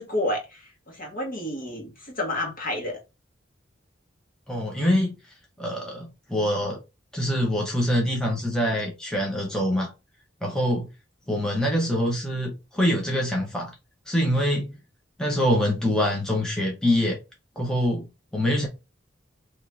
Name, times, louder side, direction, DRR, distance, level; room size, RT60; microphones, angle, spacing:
voice 1, 0.0-3.0, left 1 dB, 50° left, 1.4 m, -30 dB
voice 2, 4.5-5.2 5.6-6.8 7.1-9.9 10.4-10.9 11.3-13.7 14.1-14.7 15.2-17.2 17.6-18.1 18.3-18.7, equal, 5° left, 0.8 m, -24 dB
3.0 x 2.7 x 3.3 m
head